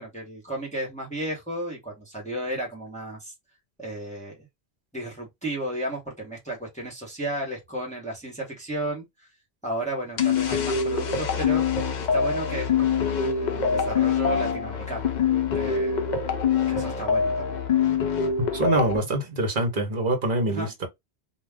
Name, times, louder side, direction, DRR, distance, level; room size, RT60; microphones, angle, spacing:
voice 1, 0.0-3.3 3.8-4.5 4.9-9.1 9.6-15.0 15.5-16.1 16.7-17.6 20.5-20.7, right 1 dB, 5° left, 0.9 m, -33 dB
sound 1, 10.2-19.0, left 6 dB, 55° left, 0.6 m, -24 dB
voice 2, 18.5-20.9, right 2 dB, 55° right, 1.0 m, -25 dB
2.3 x 2.2 x 3.3 m
omnidirectional pair, 1.1 m